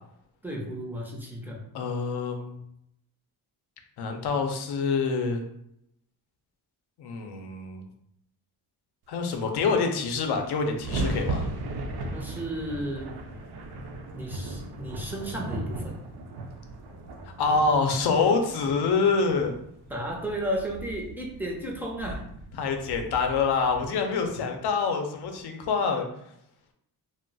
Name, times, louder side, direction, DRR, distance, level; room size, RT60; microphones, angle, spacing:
voice 1, 0.4-1.6 12.1-13.2 14.1-15.9 19.9-22.2, right 1 dB, 5° right, -2 dB, 0.4 m, -33 dB
voice 2, 1.7-2.6 4.0-5.4 7.0-7.8 9.1-11.5 17.4-19.6 22.6-26.1, left 4 dB, 75° left, 4 dB, 0.6 m, -26 dB
sound 1, 9.7-9.8 10.0-24.3, right 2 dB, 70° right, 0.5 m, -37 dB
2.3 x 2.0 x 3.8 m, 0.76 s
wide cardioid pair, 150°, 40 cm